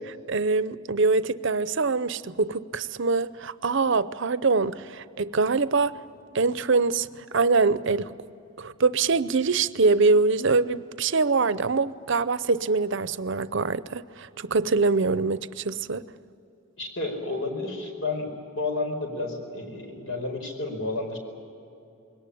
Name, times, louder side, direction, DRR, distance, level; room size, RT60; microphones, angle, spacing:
voice 1, 0.3-6.0 6.3-8.1 8.6-16.0, right 4 dB, 60° right, 0.7 m, -24 dB
voice 2, 16.8-21.2, left 2 dB, 75° left, 4.8 m, -31 dB
21.5 x 18.5 x 9.9 m
head